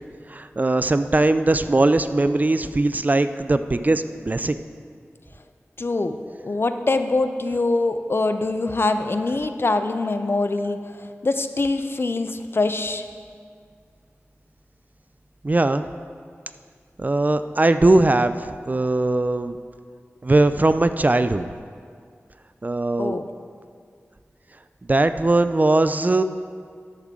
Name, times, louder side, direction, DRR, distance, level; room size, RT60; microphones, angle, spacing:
voice 1, 0.3-4.6 15.4-15.9 17.0-19.6 20.2-21.5 22.6-23.2 24.9-26.2, right 2 dB, 35° right, 11 dB, 0.4 m, -20 dB
voice 2, 5.8-6.2 6.4-10.8 11.2-13.0 23.0-23.3, left 3 dB, 50° left, 8 dB, 0.5 m, -23 dB
11.5 x 7.4 x 3.7 m, 2.1 s
wide cardioid pair, 50°, 5 cm